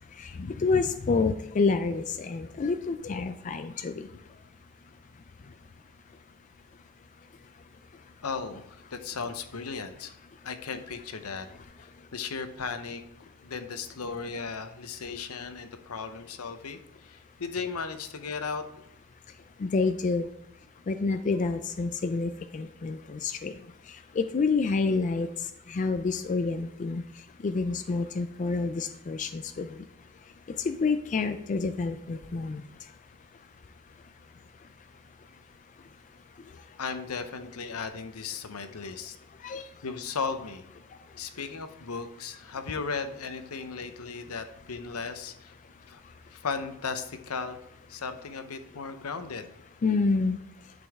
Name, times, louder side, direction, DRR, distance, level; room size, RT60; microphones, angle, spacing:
voice 1, 0.2-4.1 19.6-20.3 20.9-23.5 24.2-25.3 25.7-27.0 27.4-29.7 30.6-32.6 39.4-39.6 49.8-50.4, left 4 dB, 35° left, 8 dB, 0.4 m, -28 dB
voice 2, 8.2-10.2 10.4-11.5 11.8-13.0 13.4-18.7 36.8-39.2 39.8-40.6 41.2-45.5 45.9-46.0 46.3-47.6 47.9-49.5, left 5 dB, 80° left, 9 dB, 0.8 m, -36 dB
11.0 x 5.3 x 3.5 m, 0.76 s
head